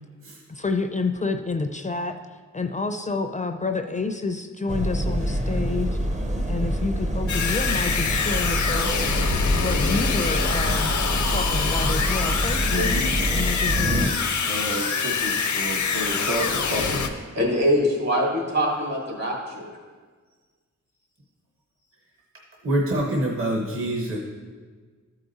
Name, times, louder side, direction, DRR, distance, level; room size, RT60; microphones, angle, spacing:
voice 1, 0.5-2.2 2.5-5.9 6.5-9.1 9.5-11.0 11.2-12.9 13.3-14.1, left 3 dB, 25° left, 6 dB, 0.4 m, -29 dB
sound 1, 4.7-14.1, right 1 dB, 25° right, 0.6 m, -26 dB
sound 2, 7.3-17.1, left 5 dB, 90° left, 0.8 m, -25 dB
voice 2, 12.6-13.1 13.7-17.0, right 1 dB, 80° right, -2 dB, 1.4 m, -31 dB
voice 3, 17.3-19.7, equal, 65° right, -3 dB, 2.8 m, -23 dB
voice 4, 22.6-24.2, right 1 dB, 45° right, -1 dB, 1.0 m, -25 dB
13.5 x 4.8 x 4.0 m, 1.5 s
wide cardioid pair, 95°, 29 cm